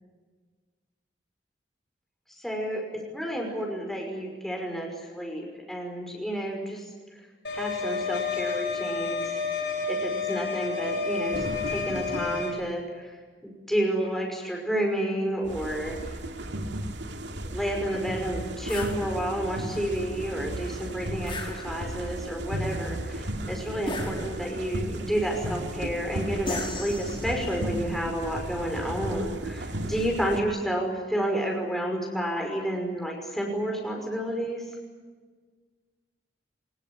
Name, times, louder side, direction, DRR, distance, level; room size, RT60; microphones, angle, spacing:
voice 1, 2.4-2.8 3.1-6.9 7.5-9.2 9.9-13.2 13.4-16.2 17.4-34.6, right 1 dB, ahead, 0 dB, 5.6 m, -30 dB
sound 1, 7.4-12.5, left 4 dB, 70° left, 7.5 m, -30 dB
sound 2, 11.3-12.7 15.4-30.4, right 1 dB, 80° right, 2.4 m, -35 dB
sound 3, 18.7-19.0 21.3-22.1 23.9-24.7 26.5-27.6, left 2 dB, 30° left, 5.0 m, -36 dB
24.0 x 21.5 x 9.8 m, 1.4 s
head